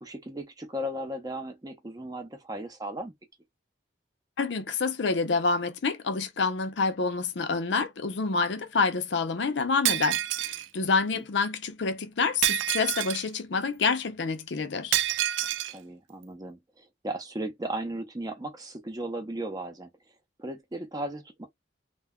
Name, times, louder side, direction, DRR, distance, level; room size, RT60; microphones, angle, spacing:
voice 1, 0.0-3.1 11.1-11.2 15.7-19.9 20.4-21.5, right 1 dB, 20° right, 0.6 m, -36 dB
voice 2, 4.4-15.0, left 4 dB, 65° left, 0.5 m, -28 dB
Shatter, 9.8-10.7 12.4-13.3 14.9-15.7, right 13 dB, 75° right, 0.3 m, -27 dB
2.2 x 2.1 x 3.5 m
head